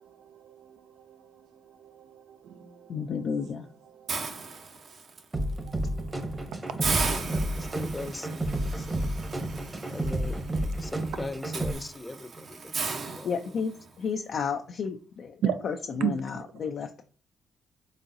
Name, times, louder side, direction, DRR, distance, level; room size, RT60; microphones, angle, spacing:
voice 1, 0.0-3.0 3.9-4.1 5.4-7.8 8.2-8.3 10.7-10.9 15.4-15.7 16.0-16.2 16.6-16.7, right 9 dB, 80° right, 0.4 m, -37 dB
voice 2, 2.9-3.7 13.2-17.0, left 6 dB, 65° left, 0.3 m, -32 dB
Hiss, 4.1-5.2 5.7-5.9 6.2-6.3 6.8-13.9, right 4 dB, 60° right, 0.8 m, -35 dB
sound 1, 5.3-11.7, right 1 dB, 30° right, 0.9 m, -31 dB
voice 3, 7.2-9.0 9.9-10.4 10.8-13.6, left 2 dB, 25° left, 0.6 m, -40 dB
4.1 x 3.6 x 2.6 m
supercardioid pair, 50°, 0 cm